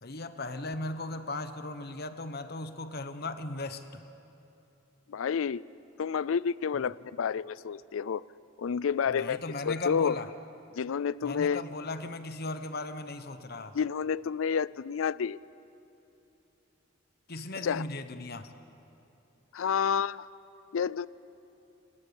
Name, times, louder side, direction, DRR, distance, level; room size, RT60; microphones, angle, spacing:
voice 1, 0.0-4.0 6.7-6.8 9.1-10.3 11.2-13.8 17.3-18.5, left 2 dB, 50° left, 10 dB, 1.1 m, -37 dB
voice 2, 5.1-5.6 6.0-8.2 8.6-10.2 10.8-11.6 13.7-15.4 17.6-17.8 19.5-20.2 20.7-21.1, left 7 dB, 80° left, 20 dB, 0.4 m, -29 dB
28.0 x 18.5 x 7.1 m, 2.9 s
head